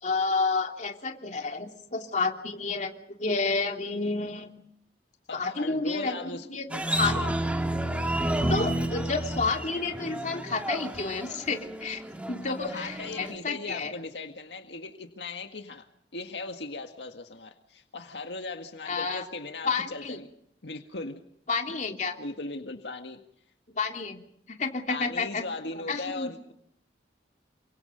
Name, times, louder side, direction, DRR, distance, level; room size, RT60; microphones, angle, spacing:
voice 1, 0.0-2.9 3.2-4.5 5.3-7.2 8.5-12.0 12.3-13.9 18.8-19.2 19.6-20.2 21.5-22.2 23.7-24.2 24.6-25.4 25.9-26.5, left 4 dB, 45° left, 3 dB, 3.2 m, -30 dB
voice 2, 5.3-6.5 7.1-7.3 12.5-15.9 16.1-20.3 20.6-21.2 22.2-23.2 24.9-26.5, left 3 dB, 85° left, 5 dB, 1.9 m, -38 dB
sound 1, 6.7-13.3, right 1 dB, 10° right, 2.1 m, -31 dB
29.5 x 24.5 x 5.3 m, 0.70 s
head